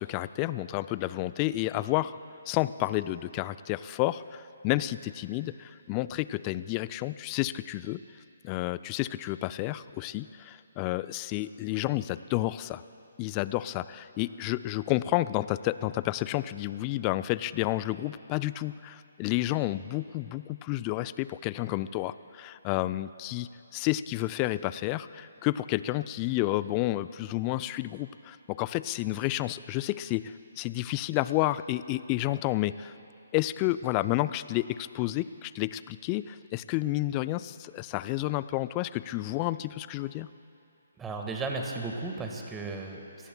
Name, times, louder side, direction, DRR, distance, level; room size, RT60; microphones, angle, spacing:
voice 1, 0.0-2.2 2.5-8.0 8.4-12.8 13.2-32.9 33.3-40.3, left 16 dB, 25° left, 15 dB, 0.3 m, -30 dB
voice 2, 41.0-43.3, right 3 dB, 10° right, 1 dB, 1.7 m, -35 dB
29.5 x 18.5 x 2.3 m, 2.9 s
figure-of-eight pair, 140°, 0 cm